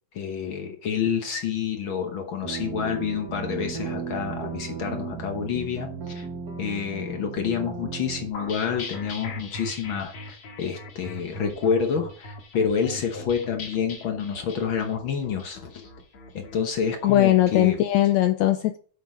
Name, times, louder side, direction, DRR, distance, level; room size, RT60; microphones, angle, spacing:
voice 1, 0.1-6.3 6.6-15.9 16.3-17.8, left 7 dB, 70° left, 4 dB, 1.2 m, -28 dB
sound 1, 2.4-8.3, right 6 dB, 75° right, 0.8 m, -35 dB
sound 2, 8.3-17.8, left 2 dB, 50° left, 2.6 m, -40 dB
voice 2, 17.0-18.8, left 14 dB, 85° left, 10 dB, 1.5 m, -20 dB
8.0 x 6.2 x 3.9 m, 0.43 s
omnidirectional pair, 3.7 m